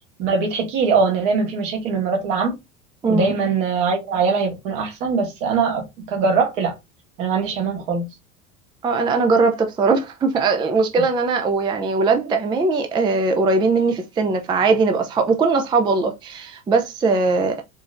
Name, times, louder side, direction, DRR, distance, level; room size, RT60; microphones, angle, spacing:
voice 1, 0.2-2.5 3.1-6.7 7.2-8.1, right 5 dB, 60° right, 1.7 m, -21 dB
voice 2, 3.0-3.3 8.8-17.6, right 4 dB, 10° right, 0.4 m, -20 dB
4.4 x 3.0 x 2.5 m
figure-of-eight pair, 80°, 42 cm